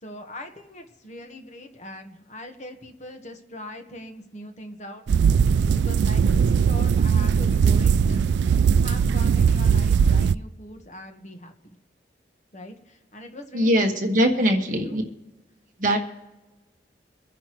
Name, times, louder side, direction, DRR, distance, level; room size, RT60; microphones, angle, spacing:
voice 1, 0.0-5.0 5.7-8.3 8.8-11.8 12.5-13.8 14.5-15.0, left 1 dB, 40° left, 4 dB, 1.3 m, -41 dB
sound 1, 5.1-10.3, right 6 dB, 75° right, 0.3 m, -19 dB
voice 2, 13.5-15.0 15.8-16.0, equal, 45° right, 2 dB, 1.5 m, -21 dB
24.5 x 10.0 x 3.1 m, 1.1 s
head